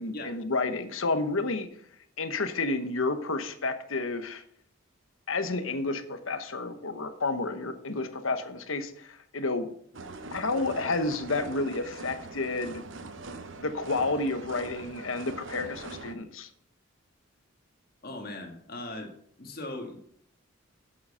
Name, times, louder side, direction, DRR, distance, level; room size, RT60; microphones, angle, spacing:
voice 1, 0.0-1.7 2.2-4.4 5.3-9.7 10.3-12.8 13.6-16.5, left 3 dB, 75° left, 9 dB, 1.1 m, -30 dB
sound 1, 9.9-16.1, right 3 dB, 65° right, 0.9 m, -42 dB
voice 2, 18.0-19.1 19.4-20.0, left 2 dB, 45° left, 3 dB, 2.0 m, -39 dB
8.5 x 7.9 x 5.6 m, 0.65 s
head